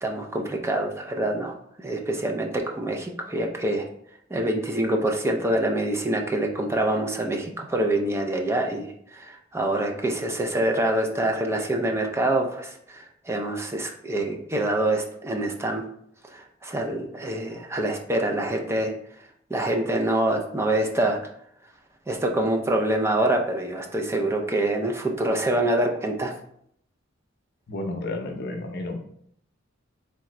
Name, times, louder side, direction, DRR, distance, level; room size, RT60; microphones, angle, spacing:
voice 1, 0.0-3.8 4.3-15.9 16.3-18.9 19.5-21.2 22.1-26.3, right 1 dB, 15° right, 2 dB, 0.4 m, -26 dB
voice 2, 27.7-29.0, left 2 dB, 55° left, 3 dB, 0.7 m, -31 dB
3.7 x 3.4 x 3.1 m, 0.69 s
head